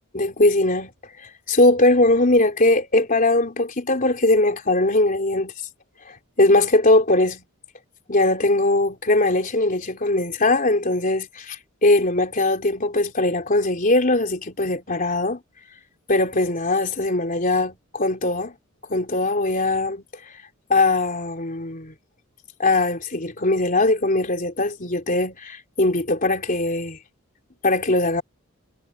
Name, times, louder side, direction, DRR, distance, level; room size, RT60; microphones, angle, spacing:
voice 1, 0.1-0.9 1.5-5.5 6.1-7.4 8.1-15.4 16.1-18.6 18.9-20.0 20.7-21.9 22.6-27.0 27.6-28.2, left 2 dB, 40° left, 3.7 m, -20 dB
head